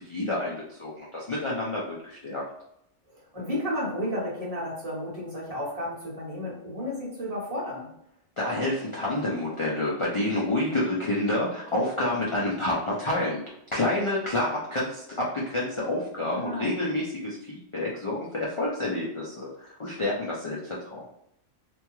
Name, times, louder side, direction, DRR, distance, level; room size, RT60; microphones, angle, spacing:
voice 1, 0.0-2.4 8.4-13.4 13.7-21.0, left 1 dB, 40° left, -5 dB, 0.4 m, -28 dB
voice 2, 3.1-7.9 16.2-16.8, left 1 dB, 35° right, -6 dB, 1.1 m, -32 dB
2.7 x 2.3 x 2.9 m, 0.78 s
omnidirectional pair, 1.2 m